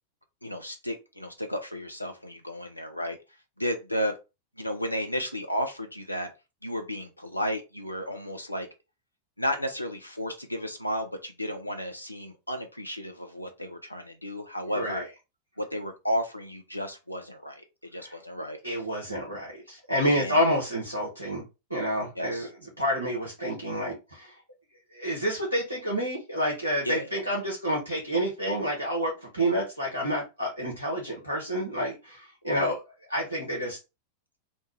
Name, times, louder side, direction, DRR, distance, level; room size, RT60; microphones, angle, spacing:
voice 1, 0.4-3.2 3.6-4.1 4.6-6.3 6.6-8.7 9.4-15.1 15.6-18.6 20.1-20.4 22.2-22.5 26.8-27.1 32.5-32.7, equal, 85° left, 5 dB, 0.3 m, -33 dB
voice 2, 14.7-15.1 18.0-18.2 18.6-21.4 21.7-22.5 22.8-24.4 24.9-32.8 33.1-33.8, equal, 85° right, -3 dB, 0.9 m, -29 dB
3.1 x 2.1 x 3.1 m, 0.27 s
figure-of-eight pair, 90°, 0 cm